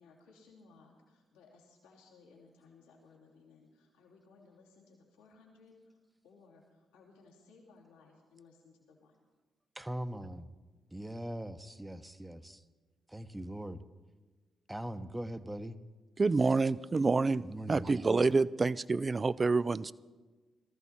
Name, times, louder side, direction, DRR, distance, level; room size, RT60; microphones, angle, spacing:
voice 1, 0.0-6.0 6.2-9.3, left 4 dB, 85° left, -4 dB, 2.5 m, -61 dB
voice 2, 9.7-10.5 10.9-12.6 13.1-13.8 14.7-15.8 17.4-17.9, right 1 dB, 10° right, 11 dB, 1.0 m, -41 dB
voice 3, 16.2-19.9, right 3 dB, 35° right, 19 dB, 0.4 m, -28 dB
19.5 x 14.0 x 4.3 m, 1.3 s
hypercardioid pair, 40°, 0 cm